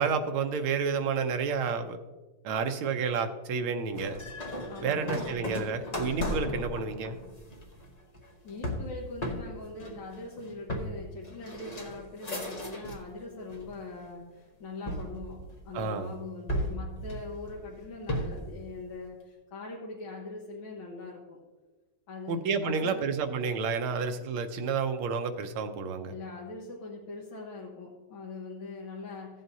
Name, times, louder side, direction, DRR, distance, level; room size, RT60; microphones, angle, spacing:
voice 1, 0.0-2.0 2.4-4.2 4.8-7.2 15.7-16.1 22.3-26.1, right 5 dB, 85° right, 6 dB, 1.7 m, -30 dB
sound 1, 3.9-13.1 13.5-14.1 14.9-15.9 16.5-18.5, equal, 45° left, 0.5 m, -36 dB
voice 2, 4.7-5.1 8.4-21.4 22.1-23.0 26.1-29.4, left 3 dB, 70° left, -4 dB, 1.9 m, -42 dB
15.0 x 7.6 x 2.7 m, 1.3 s
omnidirectional pair, 2.3 m